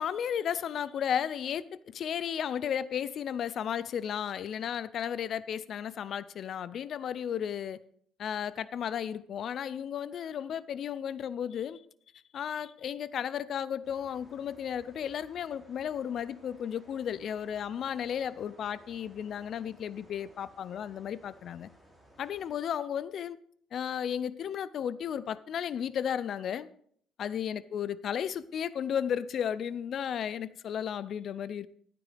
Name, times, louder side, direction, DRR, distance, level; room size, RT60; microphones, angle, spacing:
voice 1, 0.0-7.8 8.2-11.8 12.3-21.7 22.2-23.4 23.7-26.7 27.2-31.7, left 8 dB, 50° left, 0.4 m, -34 dB
sound 1, 13.8-22.5, equal, 5° left, 2.7 m, -59 dB
13.5 x 9.2 x 3.4 m
cardioid pair, 140°, 0 cm